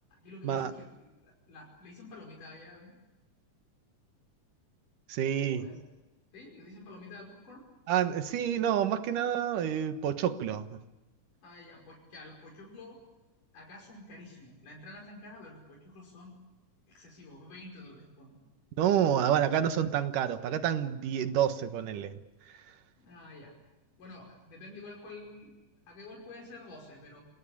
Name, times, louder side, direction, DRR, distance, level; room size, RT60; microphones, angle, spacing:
voice 1, 0.2-2.9 5.4-5.8 6.3-7.7 8.3-8.5 11.4-13.0 13.5-16.4 16.9-18.4 19.3-19.5 23.0-23.5 24.0-25.5 25.9-27.2, left 2 dB, 90° left, -2 dB, 7.1 m, -49 dB
voice 2, 5.1-5.6 7.9-10.7 18.8-22.1, right 9 dB, 90° right, 9 dB, 3.0 m, -28 dB
28.0 x 19.0 x 8.6 m, 1.1 s
omnidirectional pair, 3.6 m